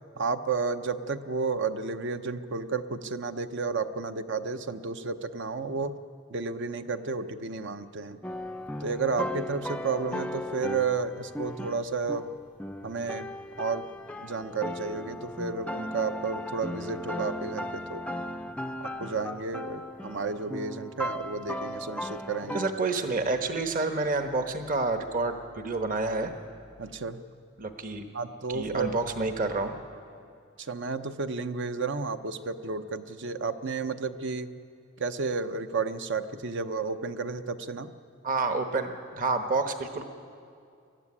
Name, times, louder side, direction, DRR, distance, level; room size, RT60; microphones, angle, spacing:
voice 1, 0.2-6.0 6.3-8.2 8.8-12.3 12.8-13.3 13.6-13.9 14.2-18.0 18.8-22.6 26.8-27.2 28.1-28.9 30.6-34.5 35.0-37.9, right 4 dB, 60° right, 9 dB, 0.8 m, -32 dB
sound 1, 8.2-22.7, left 1 dB, 5° left, 0.5 m, -37 dB
voice 2, 22.5-26.3 27.6-28.1 28.5-29.8 38.2-40.0, right 3 dB, 40° right, 6 dB, 1.2 m, -29 dB
21.5 x 13.5 x 9.8 m, 2.4 s
head